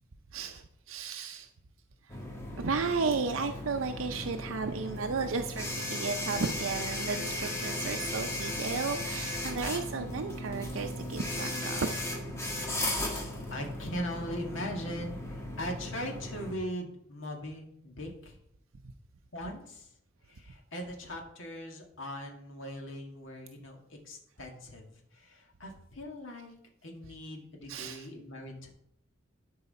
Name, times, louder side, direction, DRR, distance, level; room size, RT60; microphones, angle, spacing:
voice 1, 0.3-1.5 2.6-11.9 27.7-28.1, right 4 dB, 85° right, 6 dB, 0.6 m, -34 dB
sound 1, 2.1-16.5, left 1 dB, 15° left, 1.4 m, -36 dB
voice 2, 13.5-18.4 19.3-19.9 20.3-26.5 26.8-28.7, equal, 75° left, 1 dB, 1.9 m, -40 dB
12.0 x 4.8 x 4.2 m, 0.74 s
head